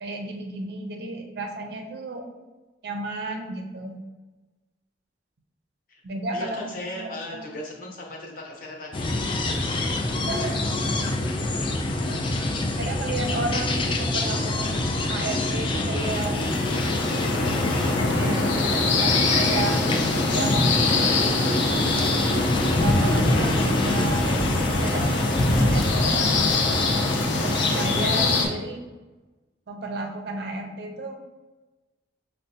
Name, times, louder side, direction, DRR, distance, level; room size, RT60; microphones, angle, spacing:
voice 1, 0.0-2.3 2.8-4.0 6.0-7.5 10.3-10.7 12.1-12.2 12.8-16.4 17.7-19.8 20.3-21.5 22.8-25.2 25.6-26.5 27.4-28.8 29.7-31.2, right 2 dB, 60° right, 3 dB, 0.5 m, -33 dB
voice 2, 6.3-9.8 11.6-11.8, left 1 dB, 50° left, -2 dB, 0.8 m, -38 dB
sound 1, 8.9-28.5, left 2 dB, 30° left, 0.3 m, -25 dB
sound 2, 16.0-28.5, left 3 dB, 85° left, 0.5 m, -26 dB
6.2 x 2.1 x 2.7 m, 1.2 s
head